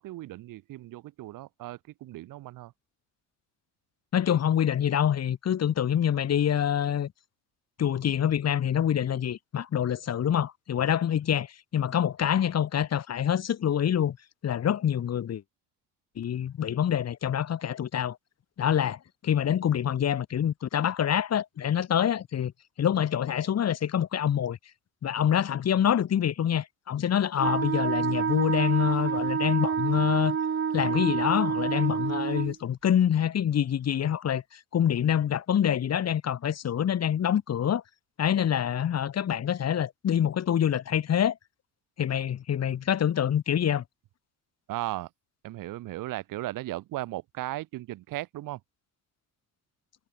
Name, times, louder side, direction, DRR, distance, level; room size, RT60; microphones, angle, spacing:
voice 1, 0.0-2.7 44.7-45.1 45.4-48.6, right 16 dB, 80° right, 3.3 m, -36 dB
voice 2, 4.1-7.1 7.8-14.2 14.4-15.4 16.2-18.2 18.6-22.5 22.8-24.6 25.0-30.4 30.7-37.8 38.2-41.4 42.0-43.8, left 9 dB, 50° left, 1.9 m, -26 dB
Wind instrument woodwind instrument, 27.4-32.6, right 7 dB, 40° right, 2.0 m, -28 dB
cardioid pair, 85°, 32 cm